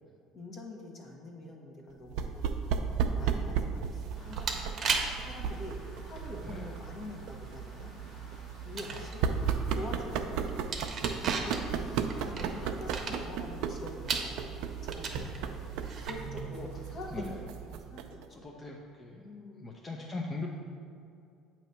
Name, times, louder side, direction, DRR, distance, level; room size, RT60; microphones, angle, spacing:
voice 1, 0.3-2.5 3.1-7.9 8.6-9.2 9.7-10.7 11.0-15.6 16.1-17.4 17.7-18.6 19.2-19.7, left 1 dB, 45° left, 0 dB, 1.2 m, -45 dB
sound 1, 2.1-18.2, right 7 dB, 75° right, 0.4 m, -35 dB
sound 2, 3.9-16.3, right 4 dB, 40° right, 0.8 m, -39 dB
sound 3, 4.1-17.4, left 1 dB, 65° left, 1.5 m, -55 dB
voice 2, 15.2-15.7 16.5-17.4 18.3-19.3 19.6-20.5, left 2 dB, 25° left, -1 dB, 0.6 m, -41 dB
8.0 x 3.0 x 5.6 m, 2.5 s
supercardioid pair, 100°, 0 cm